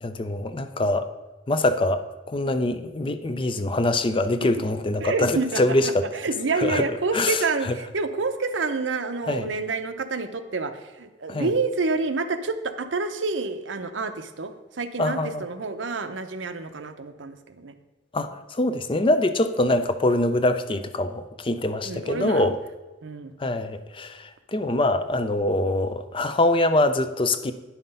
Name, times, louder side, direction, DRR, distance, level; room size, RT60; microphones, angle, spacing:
voice 1, 0.0-1.1 1.5-2.0 2.3-6.0 6.5-6.8 7.1-7.8 9.3-9.5 11.3-11.5 15.0-15.4 18.1-22.6 23.4-27.5, left 2 dB, 30° left, 11 dB, 0.5 m, -24 dB
voice 2, 5.0-10.7 11.0-17.7 21.8-22.5 23.0-23.3, right 3 dB, 85° right, 9 dB, 0.7 m, -28 dB
9.8 x 5.8 x 5.4 m, 1.1 s
head